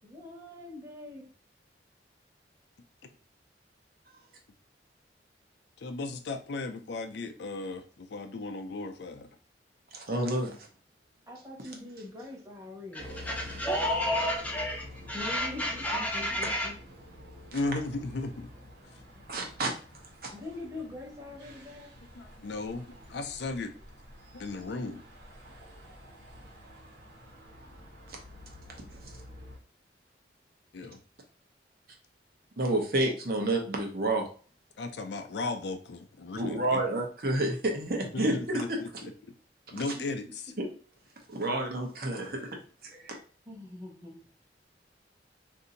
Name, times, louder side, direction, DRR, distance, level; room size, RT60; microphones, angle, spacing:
voice 1, 0.0-1.3 11.3-13.3 15.1-16.8 20.3-22.0 24.2-24.3 43.5-44.3, left 2 dB, 15° right, 0.9 m, -43 dB
voice 2, 5.8-9.3 17.5-18.5 22.2-23.7 24.3-25.0 30.7-31.0 34.8-36.8 38.1-39.1 39.7-40.3, left 3 dB, 75° left, 0.5 m, -36 dB
voice 3, 9.9-10.6 17.5-17.6 19.3-19.7 20.2-20.3 29.0-29.1 32.6-34.3 36.4-38.6 40.6-40.7 41.3-42.4 42.8-43.2, right 1 dB, 55° right, 0.8 m, -29 dB
voice 4, 12.9-16.7, left 1 dB, 10° left, 0.5 m, -31 dB
sound 1, 13.0-29.6, left 1 dB, 80° right, 1.2 m, -48 dB
2.7 x 2.6 x 3.9 m
head